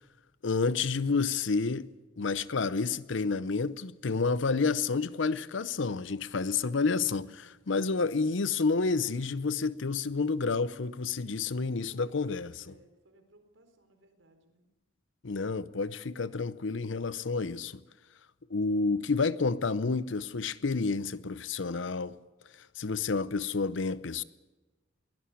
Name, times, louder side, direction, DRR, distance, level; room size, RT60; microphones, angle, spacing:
voice 1, 0.4-1.9 2.2-12.7 15.2-17.8 18.5-22.2 22.6-24.2, left 4 dB, 75° left, 0.7 m, -30 dB
voice 2, 6.2-7.5 11.4-14.7, right 1 dB, 80° right, 4.3 m, -63 dB
23.0 x 17.5 x 8.5 m
head